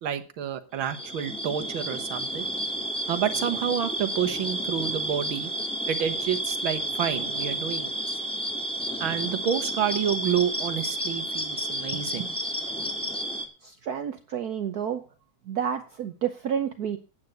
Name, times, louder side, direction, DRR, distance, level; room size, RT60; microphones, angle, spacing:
voice 1, 0.0-2.4 3.1-5.5 5.9-7.9 9.0-12.3, right 9 dB, 85° right, 8 dB, 2.0 m, -29 dB
sound 1, 0.8-13.5, right 1 dB, 5° left, 1.6 m, -31 dB
voice 2, 13.6-15.0 15.5-17.0, right 8 dB, 60° right, 8 dB, 1.2 m, -30 dB
9.4 x 8.7 x 7.8 m, 0.36 s
omnidirectional pair, 2.1 m